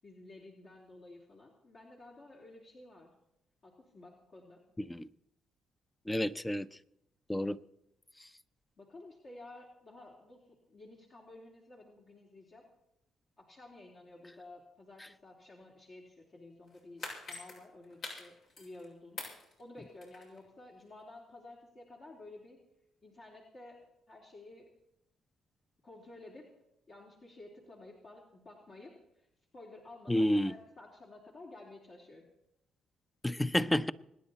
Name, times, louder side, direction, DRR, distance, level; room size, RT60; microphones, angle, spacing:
voice 1, 0.0-3.1 3.6-4.6 8.8-10.4 10.7-12.6 13.4-19.2 19.6-22.6 23.0-24.7 25.8-26.5 26.9-29.3 29.5-32.3, left 2 dB, 50° left, 3.6 m, -53 dB
voice 2, 6.1-6.7 7.3-7.6 30.1-30.5 33.2-33.9, left 1 dB, 10° left, 0.7 m, -29 dB
sound 1, 16.7-18.9 19.2-20.4 20.8-20.9, left 2 dB, 70° left, 7.7 m, -44 dB
26.0 x 10.0 x 4.3 m
supercardioid pair, 60°, 0 cm